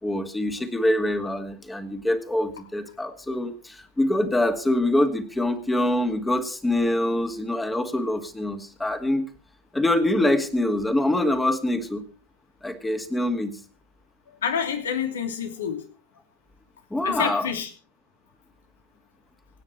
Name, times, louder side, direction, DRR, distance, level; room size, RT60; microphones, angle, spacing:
voice 1, 0.0-9.2 9.7-12.0 12.6-13.6 16.9-17.5, left 1 dB, 10° left, 8 dB, 2.4 m, -24 dB
voice 2, 14.4-15.9 17.0-17.7, left 7 dB, 65° left, 6 dB, 3.0 m, -27 dB
24.5 x 9.7 x 4.6 m, 0.37 s
figure-of-eight pair, 90°, 0 cm